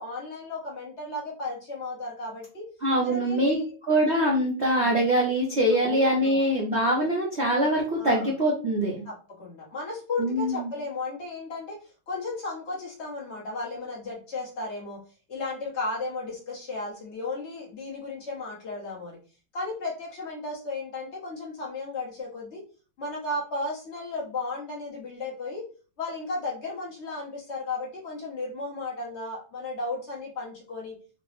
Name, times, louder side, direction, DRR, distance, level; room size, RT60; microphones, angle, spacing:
voice 1, 0.0-2.7 3.0-3.7 4.7-4.9 5.7-6.5 8.0-8.3 9.0-15.0 15.3-19.2 19.5-22.6 23.0-25.7 26.0-31.0, left 3 dB, 45° left, -3 dB, 1.2 m, -34 dB
voice 2, 2.8-3.6 3.9-9.0 10.2-10.7, right 1 dB, 50° right, -4 dB, 0.9 m, -23 dB
3.9 x 2.2 x 3.0 m, 0.36 s
omnidirectional pair, 1.9 m